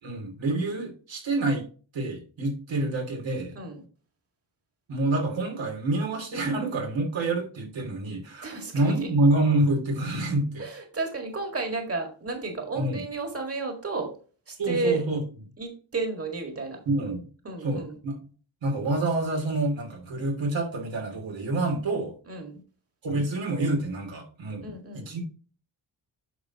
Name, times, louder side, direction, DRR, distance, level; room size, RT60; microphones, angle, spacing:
voice 1, 0.0-1.6 1.9-3.6 4.9-10.6 12.8-13.0 14.6-15.2 16.9-17.3 17.6-18.2 18.6-22.1 23.0-24.6 24.9-25.2, right 2 dB, 85° right, 3.0 m, -27 dB
voice 2, 3.6-3.9 8.4-9.1 10.6-14.1 14.5-15.0 15.6-16.8 17.4-18.0 22.3-22.6 24.6-25.1, right 3 dB, 30° right, 1.9 m, -32 dB
9.5 x 6.0 x 2.9 m
wide cardioid pair, 100°, 44 cm